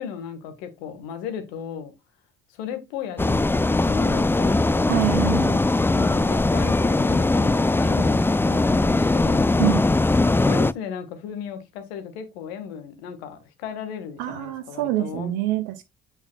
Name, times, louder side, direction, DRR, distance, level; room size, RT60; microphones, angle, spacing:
voice 1, 0.0-1.9 2.5-4.9 5.9-9.6 10.4-15.3, left 7 dB, 80° left, 1.6 m, -35 dB
sound 1, 3.2-10.7, left 2 dB, 5° left, 0.4 m, -20 dB
voice 2, 4.9-5.6 9.6-9.9 14.2-15.8, right 14 dB, 75° right, 0.9 m, -25 dB
8.9 x 5.6 x 2.4 m
hypercardioid pair, 50°, 31 cm